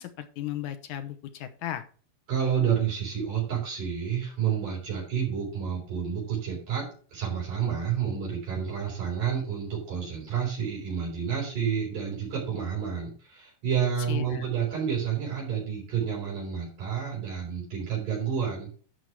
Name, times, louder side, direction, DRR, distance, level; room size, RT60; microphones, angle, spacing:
voice 1, 0.0-1.8 14.1-14.5, left 12 dB, 70° left, 8 dB, 2.1 m, -35 dB
voice 2, 2.3-18.7, right 8 dB, 60° right, -3 dB, 5.8 m, -29 dB
12.0 x 5.0 x 4.8 m, 0.41 s
omnidirectional pair, 4.2 m